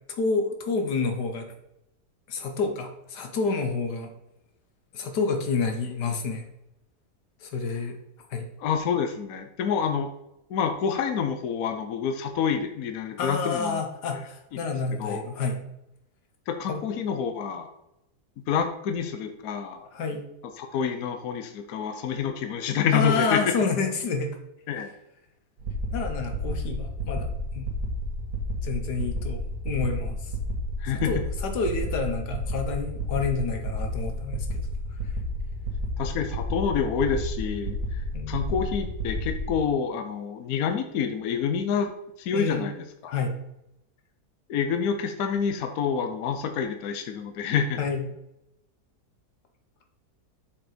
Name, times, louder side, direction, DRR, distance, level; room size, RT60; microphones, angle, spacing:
voice 1, 0.2-1.5 2.3-4.1 4.9-6.5 7.4-8.0 8.3-8.5 13.2-15.6 16.7-16.8 19.9-20.2 22.9-24.3 25.9-27.3 27.5-27.7 28.6-30.2 31.1-34.6 38.1-38.4 42.3-42.7 43.1-43.4 47.8-48.1, left 4 dB, 85° left, 5 dB, 1.7 m, -29 dB
voice 2, 8.6-10.1 10.5-13.8 14.5-14.6 15.0-15.3 16.5-17.7 18.5-19.9 20.4-23.4 24.7-24.9 30.8-31.2 36.0-38.0 38.3-41.9 42.2-43.1 44.5-47.8, left 7 dB, 65° left, 7 dB, 1.1 m, -28 dB
sound 1, 25.6-39.6, equal, 60° right, 1.7 m, -31 dB
7.1 x 4.8 x 5.0 m, 0.85 s
omnidirectional pair, 1.7 m